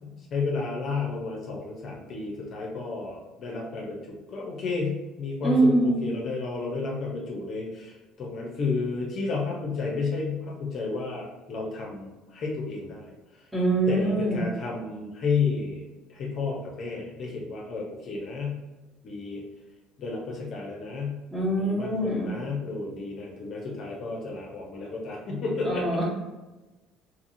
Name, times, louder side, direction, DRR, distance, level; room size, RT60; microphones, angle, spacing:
voice 1, 0.0-13.1 13.9-18.6 19.0-19.4 20.0-21.2 21.6-25.9, left 4 dB, 50° left, -2 dB, 0.7 m, -32 dB
voice 2, 5.4-6.0 13.5-14.4 21.3-22.3 25.6-26.0, right 2 dB, 5° right, -5 dB, 1.3 m, -24 dB
2.8 x 2.7 x 2.7 m, 1.1 s
supercardioid pair, 75°, 0 cm